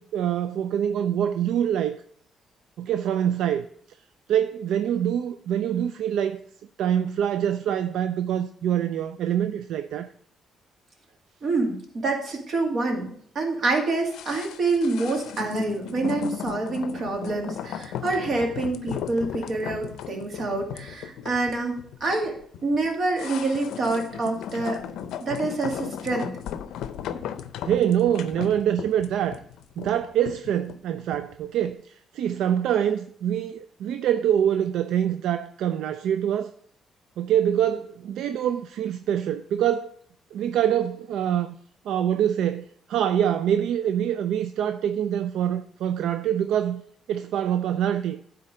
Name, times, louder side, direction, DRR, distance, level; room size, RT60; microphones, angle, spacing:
voice 1, 0.0-2.0 2.8-3.6 4.3-6.4 6.8-10.1 27.6-29.4 29.8-36.5 37.2-39.9 40.3-41.5 41.9-46.8 47.1-48.2, right 10 dB, 80° right, 0.3 m, -25 dB
voice 2, 11.4-21.7 22.0-22.4 22.6-24.8 25.2-26.3, right 3 dB, 55° right, 2.2 m, -27 dB
sound 1, 14.1-31.3 31.6-31.7, left 9 dB, 85° left, 0.5 m, -36 dB
9.8 x 3.9 x 6.4 m
cardioid pair, 90°, 0 cm